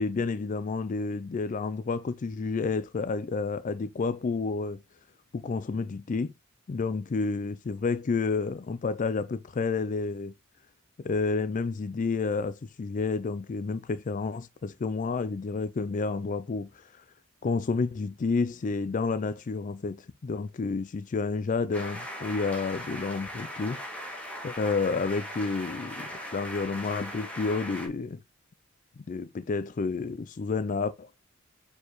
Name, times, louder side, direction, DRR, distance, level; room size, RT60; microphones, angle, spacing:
voice 1, 0.0-4.8 5.3-6.3 6.7-10.3 11.0-17.0 17.4-23.8 24.4-28.2 29.1-31.1, left 4 dB, 35° left, 0.4 m, -30 dB
sound 1, 21.7-27.9, equal, 5° left, 2.3 m, -39 dB
6.9 x 4.6 x 3.1 m
head